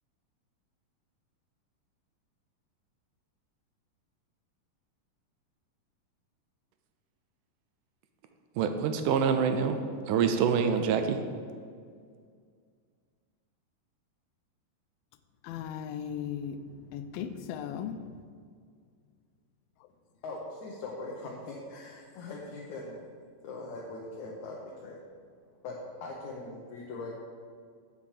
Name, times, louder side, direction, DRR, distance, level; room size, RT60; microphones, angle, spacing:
voice 1, 8.6-9.8 10.1-11.2, right 6 dB, 75° right, 7 dB, 2.0 m, -26 dB
voice 2, 15.4-18.2, left 8 dB, 90° left, 10 dB, 2.4 m, -37 dB
voice 3, 20.2-23.0 23.4-25.0 25.6-27.2, left 2 dB, 65° left, -2 dB, 2.1 m, -41 dB
8.3 x 5.9 x 7.3 m, 2.1 s
omnidirectional pair, 4.1 m